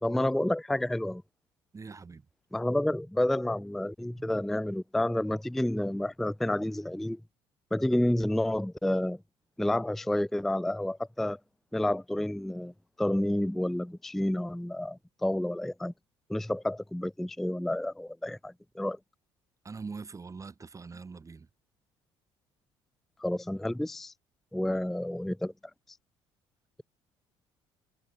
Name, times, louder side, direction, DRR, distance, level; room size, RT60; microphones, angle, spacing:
voice 1, 0.0-1.2 2.5-7.2 7.7-9.2 9.6-11.4 11.7-12.7 13.0-15.9 16.3-19.0 23.2-24.1 24.5-25.5, left 1 dB, ahead, 0.3 m, -30 dB
voice 2, 1.7-2.3 4.2-4.3 19.6-21.5, right 4 dB, 30° right, 2.3 m, -43 dB
supercardioid pair, 75°, 11 cm